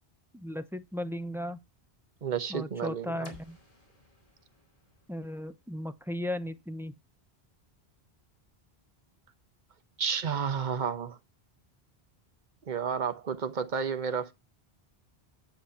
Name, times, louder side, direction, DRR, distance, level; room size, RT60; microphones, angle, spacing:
voice 1, 0.3-1.6 2.5-3.6 5.1-6.9, left 1 dB, 5° right, 0.5 m, -36 dB
voice 2, 2.2-3.3 10.0-11.2 12.7-14.3, right 6 dB, 50° right, 1.0 m, -31 dB
sound 1, 3.2-7.1, left 2 dB, 35° left, 2.9 m, -57 dB
9.4 x 7.4 x 4.2 m
omnidirectional pair, 1.1 m